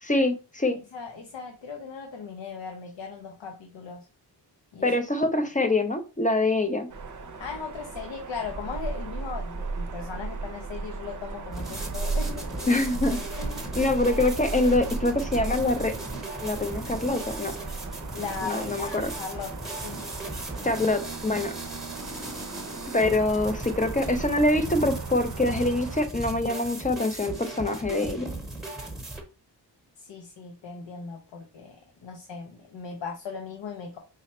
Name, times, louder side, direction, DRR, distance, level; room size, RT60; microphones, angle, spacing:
voice 1, 0.0-0.8 4.8-6.9 12.7-13.2 13.8-15.9 16.4-17.5 18.4-19.1 20.6-21.5 22.9-28.3, left 2 dB, 20° left, 0.5 m, -25 dB
voice 2, 0.9-4.1 4.7-5.0 5.3-5.4 7.4-12.8 13.4-13.8 18.1-19.5 19.8-20.0 30.0-34.0, left 5 dB, 80° left, 0.7 m, -38 dB
sound 1, 6.9-26.1, right 3 dB, 45° right, 0.6 m, -36 dB
sound 2, 11.5-29.2, right 2 dB, ahead, 1.0 m, -37 dB
4.9 x 2.1 x 4.2 m
wide cardioid pair, 130°, 43 cm